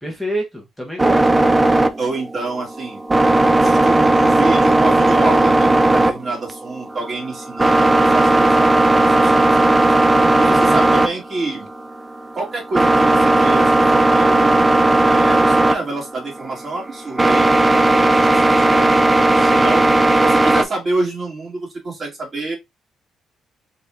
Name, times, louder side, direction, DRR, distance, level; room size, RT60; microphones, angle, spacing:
voice 1, 0.0-1.3 10.2-10.9 19.3-19.7, equal, ahead, 1.2 m, -29 dB
sound 1, 1.0-20.6, right 2 dB, 20° right, 0.6 m, -15 dB
voice 2, 2.0-3.0 3.5-9.9 10.4-11.7 12.3-14.7 15.0-18.9 19.5-22.6, right 3 dB, 40° right, 2.6 m, -27 dB
4.1 x 3.1 x 3.5 m
cardioid pair, 90°, 0 cm